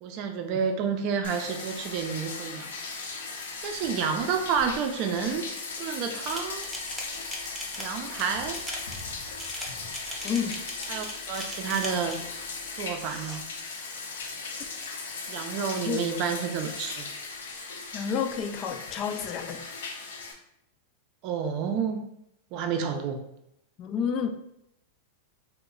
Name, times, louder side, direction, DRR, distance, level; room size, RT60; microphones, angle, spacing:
voice 1, 0.0-2.7 3.6-5.5 5.8-6.6 7.8-8.6 10.9-12.2 12.7-13.4 15.3-17.1 21.2-22.0 22.5-23.2, right 6 dB, 45° right, 5 dB, 0.5 m, -29 dB
Bathtub (filling or washing), 1.2-20.3, left 4 dB, 85° left, 0.6 m, -38 dB
sound 1, 6.2-12.3 12.9-13.4, equal, 5° right, 0.7 m, -39 dB
voice 2, 10.2-10.5 15.9-16.0 17.9-19.6 23.8-24.3, left 7 dB, 35° left, 7 dB, 0.4 m, -29 dB
3.0 x 2.1 x 3.7 m, 0.78 s
hypercardioid pair, 130°, 0 cm